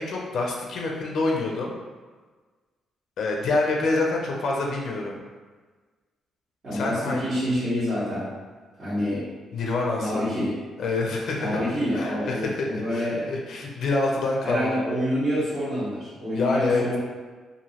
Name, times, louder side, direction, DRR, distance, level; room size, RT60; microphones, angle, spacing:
voice 1, 0.0-1.7 3.2-5.2 6.7-7.2 9.5-10.2 10.8-11.6 11.9-12.7 12.9-14.8 16.3-16.8, left 3 dB, 65° left, -1 dB, 0.5 m, -26 dB
voice 2, 6.6-8.3 8.8-9.2 10.0-10.5 11.3-13.3 14.4-17.0, equal, 50° right, -15 dB, 1.5 m, -27 dB
2.8 x 2.6 x 2.9 m, 1.4 s
cardioid pair, 90°, 0 cm